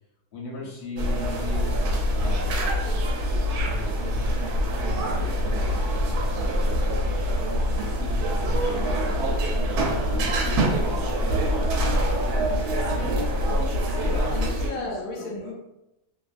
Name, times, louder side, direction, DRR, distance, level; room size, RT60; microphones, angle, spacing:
voice 1, 0.3-2.7 3.6-7.0 7.8-12.0 12.8-13.2 13.5-14.3 14.8-14.9 15.2-15.4, left 2 dB, 40° left, -5 dB, 0.9 m, -39 dB
sound 1, 1.0-14.7, equal, 85° right, 1.1 m, -24 dB
voice 2, 8.8-9.2 12.9-13.6 14.3-15.5, left 2 dB, 80° left, -2 dB, 1.1 m, -36 dB
2.6 x 2.4 x 2.4 m, 0.91 s
omnidirectional pair, 1.6 m